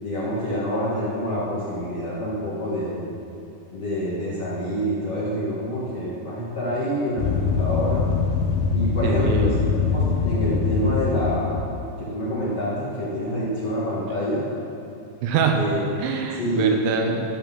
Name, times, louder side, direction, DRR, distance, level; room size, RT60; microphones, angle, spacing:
voice 1, 0.0-3.0 3.7-8.1 8.7-9.5 9.9-11.6 12.0-14.4 15.5-15.8 16.4-16.7, equal, 55° left, -7 dB, 1.8 m, -27 dB
sound 1, 7.2-11.8, left 5 dB, 80° left, 2.9 m, -23 dB
voice 2, 9.0-9.6 15.2-15.6 16.0-17.2, right 5 dB, 80° right, 2 dB, 3.2 m, -24 dB
14.5 x 6.9 x 6.0 m, 2.6 s
omnidirectional pair, 5.3 m